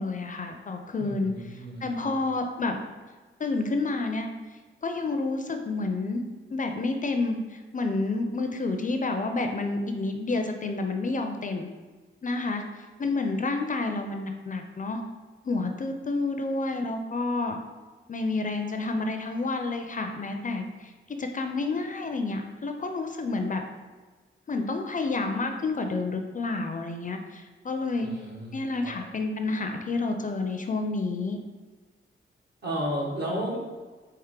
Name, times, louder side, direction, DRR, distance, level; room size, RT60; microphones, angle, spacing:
voice 1, 0.0-1.3 1.8-2.8 3.4-4.3 4.8-6.2 6.5-11.7 12.2-12.6 13.0-15.0 15.5-17.6 18.1-20.9 21.2-23.6 24.5-28.1 28.5-31.4, left 3 dB, 40° left, 5 dB, 0.4 m, -29 dB
voice 2, 1.0-2.2 28.0-29.0 32.6-33.6, equal, 55° right, -3 dB, 1.3 m, -33 dB
4.6 x 2.9 x 3.7 m, 1.3 s
wide cardioid pair, 100°, 21 cm